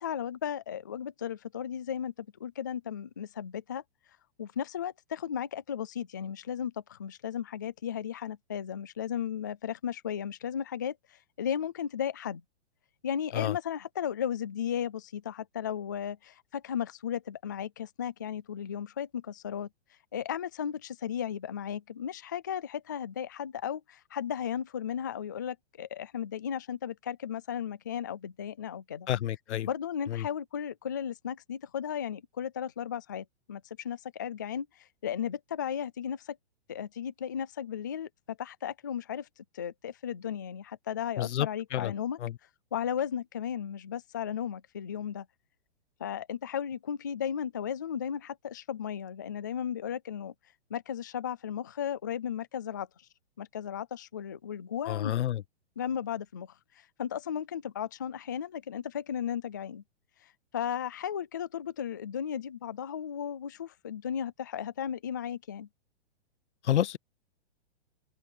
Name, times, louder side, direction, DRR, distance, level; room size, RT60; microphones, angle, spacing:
voice 1, 0.0-2.1 2.4-3.8 4.4-12.4 13.0-19.7 20.1-29.1 29.6-36.4 36.7-39.3 39.5-42.2 42.7-45.3 46.0-50.3 50.7-52.9 53.4-55.1 55.8-56.5 57.0-59.8 60.5-65.7, left 9 dB, 20° left, 0.3 m, -35 dB
voice 2, 29.1-29.7 30.1-30.3 41.2-41.9 42.2-42.4 54.9-55.4 66.6-67.0, left 12 dB, 80° left, 0.8 m, -29 dB
hypercardioid pair, 165°, 34 cm